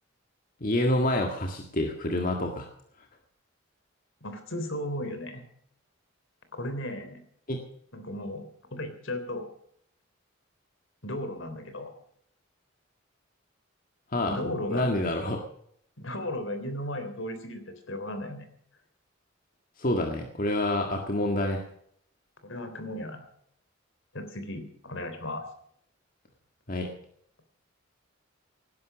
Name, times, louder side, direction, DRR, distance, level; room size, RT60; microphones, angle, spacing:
voice 1, 0.6-2.7 7.5-7.6 14.1-15.4 19.8-21.6 26.7-26.9, left 1 dB, 40° left, 2 dB, 1.9 m, -27 dB
voice 2, 4.2-5.4 6.5-7.2 7.9-9.5 11.0-11.9 14.2-14.9 16.0-18.5 22.4-23.2 24.1-25.4, left 1 dB, 65° left, 8 dB, 3.5 m, -35 dB
18.0 x 11.0 x 6.2 m, 0.67 s
head